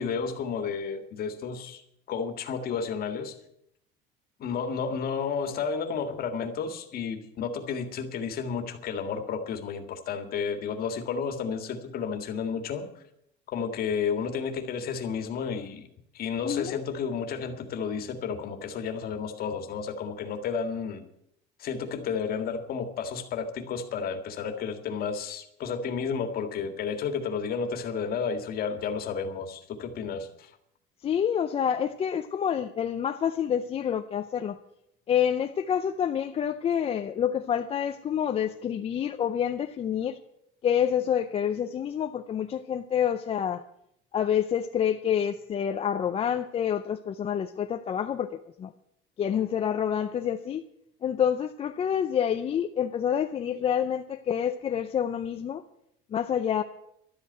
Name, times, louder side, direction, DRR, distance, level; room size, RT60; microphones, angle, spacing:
voice 1, 0.0-1.8 2.1-3.4 4.4-12.9 13.5-15.9 16.1-21.0 21.6-30.5, left 6 dB, 45° left, 1.9 m, -32 dB
voice 2, 16.4-16.9 31.0-34.6 35.1-40.2 40.6-43.7 44.1-48.7 49.2-50.6 51.0-55.6 56.1-56.6, left 9 dB, 30° left, 0.5 m, -28 dB
12.5 x 8.3 x 9.2 m
cardioid pair, 155°, 21 cm